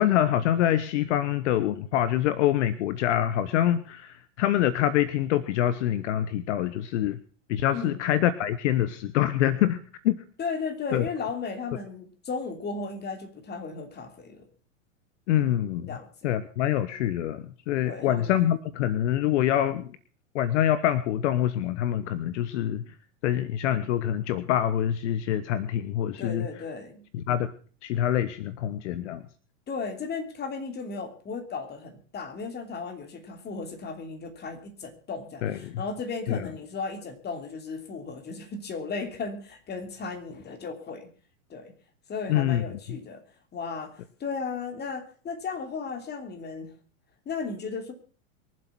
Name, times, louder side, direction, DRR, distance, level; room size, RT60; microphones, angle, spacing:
voice 1, 0.0-7.2 7.5-9.8 10.0-10.2 10.9-11.0 15.3-16.0 16.2-19.9 20.3-22.8 23.2-26.5 27.1-27.5 27.8-29.2 35.4-35.8 36.3-36.5 42.3-42.6, left 11 dB, 60° left, 15 dB, 1.1 m, -25 dB
voice 2, 10.4-14.5 15.9-16.3 17.8-18.3 26.2-27.0 29.7-41.1 41.5-41.7 42.1-43.2 43.5-46.7 47.2-47.9, left 4 dB, 25° left, 6 dB, 2.9 m, -35 dB
23.0 x 7.8 x 5.9 m, 0.42 s
hypercardioid pair, 105°, 40 cm